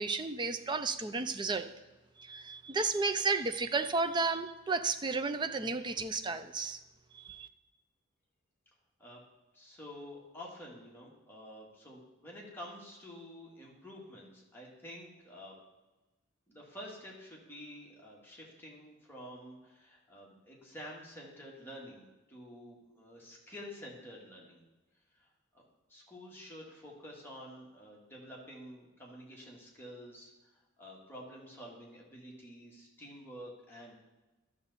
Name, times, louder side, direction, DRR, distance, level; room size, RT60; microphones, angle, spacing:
voice 1, 0.0-1.7 2.2-6.8 7.1-7.5, right 3 dB, 25° right, 10 dB, 0.4 m, -33 dB
voice 2, 9.5-15.5 16.5-24.6 25.2-25.3 25.9-30.3 30.8-33.9, equal, 10° left, -4 dB, 1.8 m, -49 dB
12.0 x 6.9 x 4.1 m, 1.1 s
head